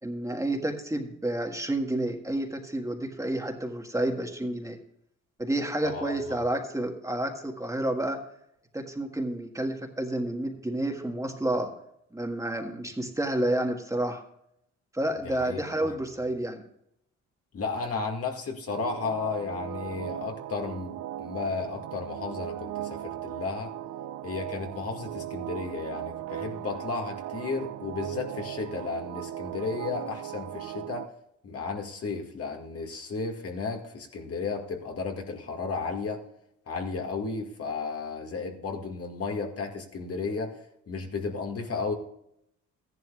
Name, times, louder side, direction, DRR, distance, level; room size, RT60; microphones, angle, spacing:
voice 1, 0.0-4.8 5.4-8.2 8.7-11.7 12.1-14.2 14.9-16.6, right 1 dB, 10° right, 2 dB, 1.7 m, -30 dB
voice 2, 5.8-6.4 15.2-15.9 17.5-23.7 24.2-31.1 31.4-36.2 36.7-41.9, left 4 dB, 50° left, 3 dB, 2.0 m, -34 dB
sound 1, 18.7-31.1, right 12 dB, 80° right, 0.7 m, -37 dB
14.5 x 11.0 x 2.4 m, 0.75 s
cardioid pair, 90°, 30 cm